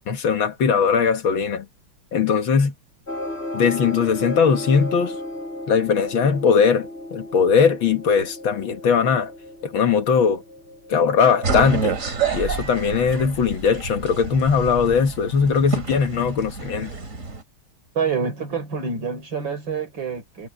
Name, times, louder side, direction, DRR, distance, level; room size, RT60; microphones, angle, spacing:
voice 1, 0.0-1.7 2.1-2.7 3.5-5.2 5.7-9.3 9.6-10.4 10.9-12.0 12.3-16.9, left 6 dB, 70° left, 2.3 m, -20 dB
sound 1, 3.1-12.3, left 1 dB, 30° left, 7.1 m, -35 dB
sound 2, 11.4-17.4, right 5 dB, 40° right, 2.8 m, -28 dB
voice 2, 17.9-20.5, right 5 dB, 65° right, 4.9 m, -27 dB
omnidirectional pair, 2.3 m